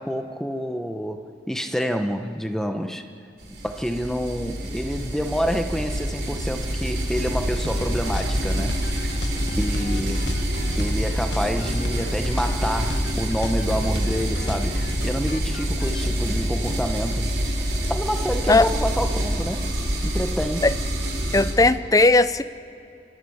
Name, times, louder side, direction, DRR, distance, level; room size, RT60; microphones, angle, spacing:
voice 1, 0.0-3.0 3.6-9.1 9.6-10.4 10.7-17.3 17.9-19.8 20.0-20.7, equal, 5° left, 6 dB, 1.0 m, -28 dB
sound 1, 3.4-21.5, equal, 90° right, 5.0 m, -26 dB
sound 2, 7.6-16.1, left 1 dB, 85° left, 1.3 m, -33 dB
voice 2, 21.3-22.4, left 2 dB, 20° left, 14 dB, 0.6 m, -17 dB
29.0 x 14.0 x 8.0 m, 2.6 s
head